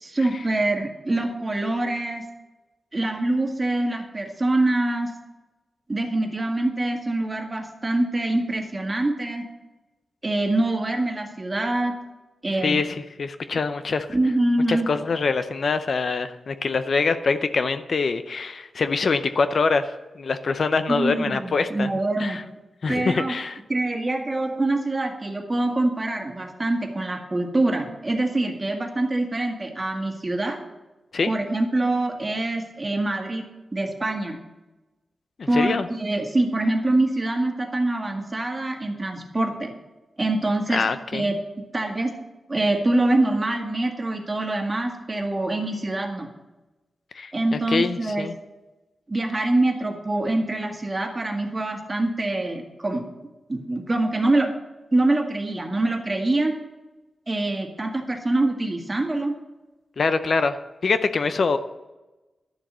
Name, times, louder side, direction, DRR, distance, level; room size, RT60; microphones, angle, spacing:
voice 1, 0.0-2.2 2.9-5.1 5.9-9.4 10.2-11.9 12.4-12.8 14.1-14.9 20.9-22.4 22.9-23.3 23.7-30.6 31.3-33.4 33.7-34.4 35.5-39.7 40.2-40.8 41.1-41.4 41.7-42.1 42.5-46.3 47.3-48.3 49.1-53.1 53.5-54.5 54.9-56.5 57.3-59.3, right 2 dB, 25° right, 2 dB, 1.8 m, -24 dB
voice 2, 12.6-14.1 14.7-21.9 22.2-22.4 22.8-23.6 31.1-31.3 35.4-35.9 40.7-41.3 47.1-48.3 60.0-60.6 60.8-61.6, left 4 dB, 60° left, 10 dB, 0.6 m, -24 dB
11.5 x 7.2 x 7.3 m, 1.1 s
wide cardioid pair, 110°, 0 cm